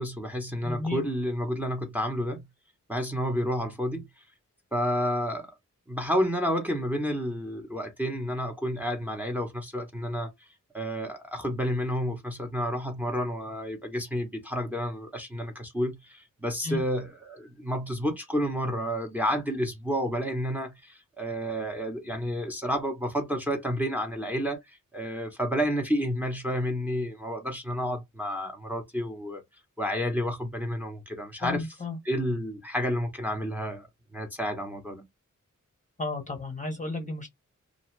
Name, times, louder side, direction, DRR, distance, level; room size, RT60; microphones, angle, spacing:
voice 1, 0.0-2.5 2.9-4.1 4.7-5.5 5.9-10.3 10.7-24.6 24.9-29.4 29.8-31.6 32.0-33.9 34.1-35.0, equal, 5° right, 0.9 m, -30 dB
voice 2, 0.6-1.0 16.6-16.8 31.4-32.0 36.0-37.3, left 3 dB, 25° left, 0.8 m, -33 dB
2.6 x 2.2 x 3.1 m
wide cardioid pair, 95°, 32 cm